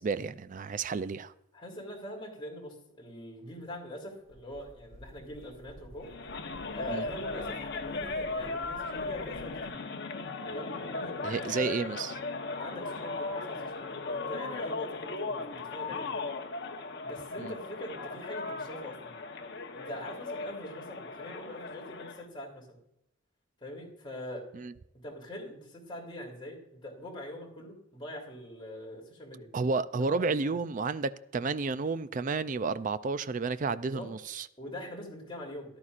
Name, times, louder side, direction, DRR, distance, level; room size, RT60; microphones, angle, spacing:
voice 1, 0.0-1.3 6.9-7.0 11.2-12.2 17.4-17.5 24.5-24.7 29.5-34.5, right 4 dB, 40° right, 0.4 m, -31 dB
voice 2, 1.5-6.1 6.7-9.8 10.5-11.7 12.5-16.3 17.0-19.1 19.7-22.8 23.6-24.5 25.0-29.5 29.9-30.6 33.8-34.1 34.6-35.8, equal, 25° left, 3.1 m, -43 dB
sound 1, 3.4-9.7, equal, 80° right, 1.4 m, -53 dB
sound 2, 6.0-22.2, left 3 dB, 55° left, 1.0 m, -37 dB
14.0 x 11.5 x 2.5 m
head